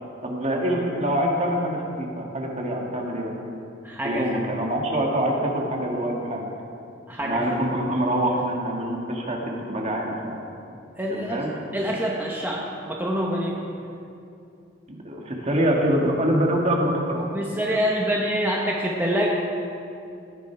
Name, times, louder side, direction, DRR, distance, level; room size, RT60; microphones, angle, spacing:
voice 1, 0.2-3.3 4.0-6.5 7.2-10.4 11.1-11.5 14.9-17.3, right 1 dB, 35° right, -1 dB, 1.9 m, -25 dB
voice 2, 3.8-4.2 7.1-7.6 11.0-11.4 11.7-13.6 17.3-19.3, equal, 10° right, -3 dB, 1.1 m, -26 dB
17.5 x 10.5 x 4.6 m, 2.7 s
head